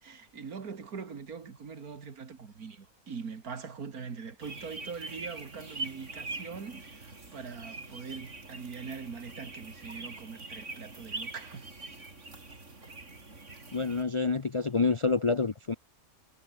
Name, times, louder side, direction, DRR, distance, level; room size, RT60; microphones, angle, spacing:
voice 1, 0.0-11.7, right 5 dB, 85° right, 2.5 m, -42 dB
sound 1, 4.4-14.0, right 3 dB, 55° right, 4.0 m, -43 dB
voice 2, 13.7-15.7, left 4 dB, 40° left, 0.4 m, -27 dB
omnidirectional pair, 1.5 m